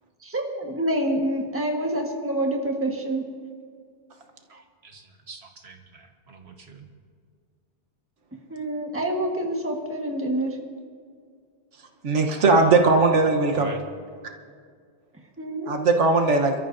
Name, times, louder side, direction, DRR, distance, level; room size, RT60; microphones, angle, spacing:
voice 1, 0.2-3.3 8.5-10.6 15.4-15.7, right 1 dB, 10° right, 1 dB, 1.4 m, -27 dB
voice 2, 4.5-6.9 12.6-12.8 13.5-13.8, right 3 dB, 65° right, 4 dB, 1.6 m, -41 dB
voice 3, 12.0-13.7 15.7-16.5, right 3 dB, 85° right, 3 dB, 1.4 m, -19 dB
27.5 x 13.5 x 2.7 m, 2.1 s
omnidirectional pair, 1.2 m